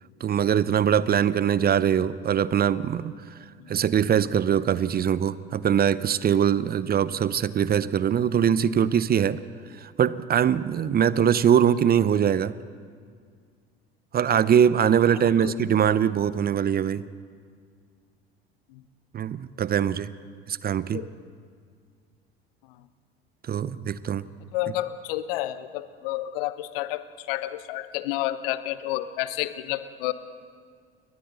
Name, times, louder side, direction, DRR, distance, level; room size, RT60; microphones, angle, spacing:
voice 1, 0.2-3.1 3.7-9.4 9.8-12.5 14.1-17.0 19.1-20.1 20.5-21.0 23.5-24.3, right 9 dB, 30° right, 17 dB, 0.8 m, -22 dB
voice 2, 15.2-15.5 18.7-18.8 20.9-21.1 24.5-30.1, left 15 dB, 65° left, 14 dB, 1.1 m, -30 dB
29.5 x 23.0 x 4.1 m, 2.1 s
figure-of-eight pair, 65°, 31 cm